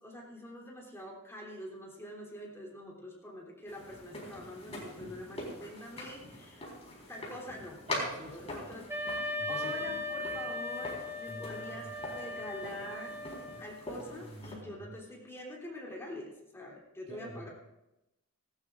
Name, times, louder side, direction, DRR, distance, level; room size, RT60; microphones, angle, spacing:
voice 1, 0.0-7.8 8.2-8.9 9.5-13.2 13.6-17.5, left 1 dB, 10° left, -3 dB, 3.1 m, -45 dB
sound 1, 3.7-14.5, left 1 dB, 30° left, 4.1 m, -43 dB
voice 2, 7.9-8.5 9.4-9.7 11.3-11.9 13.9-15.0 17.1-17.5, right 1 dB, 30° right, -2 dB, 2.5 m, -46 dB
Wind instrument woodwind instrument, 8.9-13.8, left 2 dB, 10° right, 1.8 m, -38 dB
18.0 x 17.5 x 2.5 m, 0.93 s
head